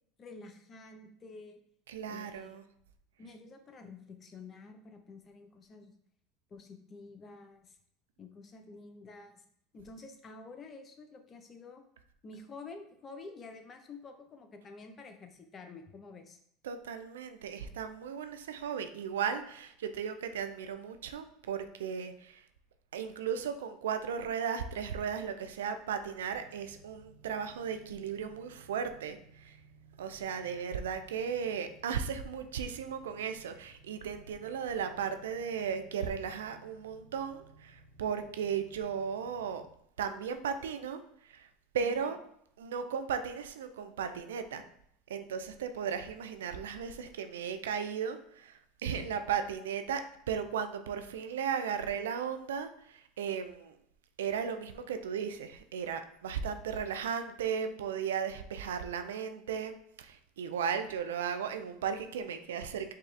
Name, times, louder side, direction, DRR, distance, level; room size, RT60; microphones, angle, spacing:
voice 1, 0.2-1.6 2.1-2.6 3.2-5.9 6.5-7.8 8.2-9.4 9.7-11.8 12.2-16.4 41.8-42.1 48.9-49.1, left 3 dB, 35° left, 6 dB, 0.7 m, -49 dB
voice 2, 1.9-2.6 16.6-22.4 22.9-29.6 30.0-39.6 40.0-41.5 41.7-42.2 42.6-44.6 45.1-53.7 54.2-62.9, right 7 dB, 85° right, 8 dB, 0.4 m, -36 dB
sound 1, 26.2-39.7, right 3 dB, 60° right, 1.1 m, -59 dB
4.6 x 2.4 x 3.3 m, 0.69 s
hypercardioid pair, 90°, 0 cm